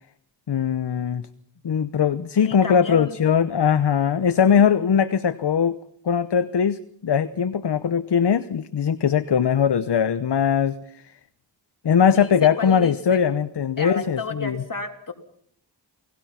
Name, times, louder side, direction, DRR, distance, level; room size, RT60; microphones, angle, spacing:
voice 1, 0.5-1.2 1.6-5.8 6.0-11.0 11.8-14.6, left 7 dB, 65° left, 12 dB, 0.9 m, -20 dB
voice 2, 2.3-3.2 4.8-4.9 12.1-13.2 13.8-15.1, left 4 dB, 45° left, 3 dB, 3.4 m, -32 dB
29.5 x 19.5 x 5.8 m, 0.65 s
wide cardioid pair, 75°, 43 cm